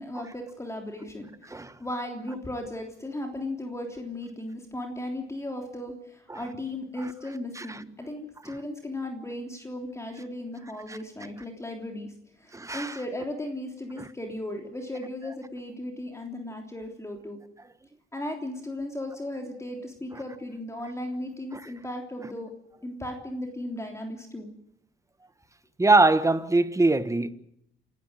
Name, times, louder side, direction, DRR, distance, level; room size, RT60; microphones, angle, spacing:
voice 1, 0.0-17.4 18.1-22.5 22.8-24.5, left 1 dB, 15° left, 3.3 m, -36 dB
voice 2, 12.5-13.0 25.8-27.3, right 3 dB, 15° right, 1.3 m, -22 dB
27.5 x 12.5 x 9.0 m
cardioid pair, 90°, 20 cm